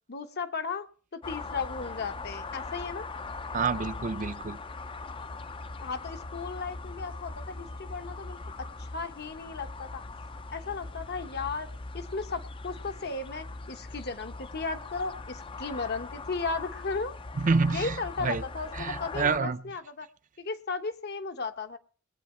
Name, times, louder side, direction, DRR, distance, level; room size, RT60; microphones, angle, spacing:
voice 1, 0.1-0.9 1.1-3.1 5.8-10.0 10.5-17.1 17.7-20.1 20.4-21.8, left 4 dB, 55° left, 1.1 m, -35 dB
sound 1, 1.2-19.4, left 3 dB, 25° left, 0.5 m, -40 dB
voice 2, 3.5-4.6 17.4-17.9 18.2-18.4 18.8-19.6, right 4 dB, 40° right, 0.5 m, -27 dB
22.0 x 8.2 x 4.4 m
head